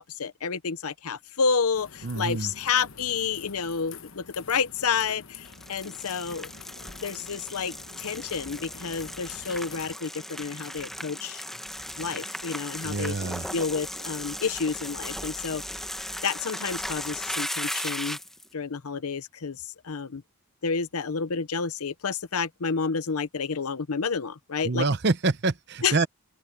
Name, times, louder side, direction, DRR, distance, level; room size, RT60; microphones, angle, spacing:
voice 1, 0.0-6.5 7.0-11.4 12.0-13.2 13.5-15.6 16.2-18.2 18.5-20.2 20.6-24.9 25.8-26.1, left 5 dB, 80° left, 0.8 m, -30 dB
sound 1, 1.7-10.0, left 6 dB, 60° left, 1.2 m, -46 dB
voice 2, 2.0-2.5 12.8-13.5 24.6-26.1, right 3 dB, 50° right, 0.9 m, -26 dB
sound 2, 5.5-18.5, left 1 dB, ahead, 0.9 m, -37 dB
open air
head